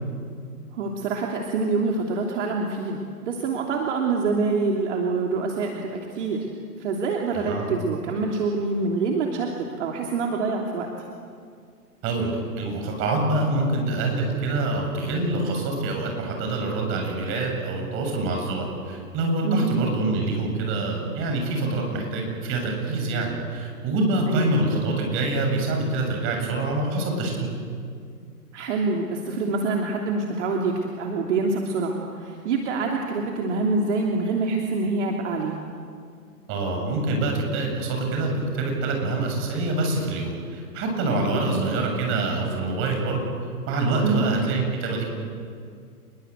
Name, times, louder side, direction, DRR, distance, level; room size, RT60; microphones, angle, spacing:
voice 1, 0.7-6.5 6.8-10.9 19.4-19.7 24.3-24.5 28.5-35.5 41.2-41.6 44.0-44.4, right 3 dB, 50° right, 0 dB, 3.2 m, -26 dB
voice 2, 7.3-7.7 12.0-27.5 36.5-43.2 43.7-45.1, right 2 dB, 25° right, 2 dB, 7.5 m, -25 dB
28.0 x 22.0 x 8.2 m, 2.2 s
figure-of-eight pair, 125°, 46 cm